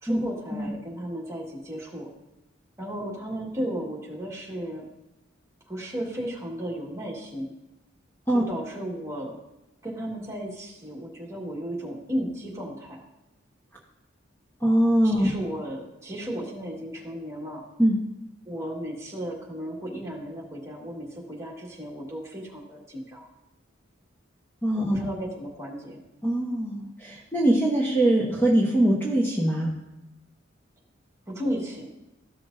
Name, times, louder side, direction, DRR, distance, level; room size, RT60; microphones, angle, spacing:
voice 1, 0.0-2.1 2.8-4.8 5.7-7.5 8.3-9.4 9.8-13.0 15.0-17.6 18.4-23.3 24.8-26.0 31.3-31.9, equal, 15° right, -3 dB, 1.6 m, -34 dB
voice 2, 14.6-15.3 17.8-18.0 24.6-25.0 26.2-29.7, right 1 dB, 10° left, -3 dB, 1.0 m, -22 dB
13.5 x 6.0 x 2.6 m, 0.93 s
head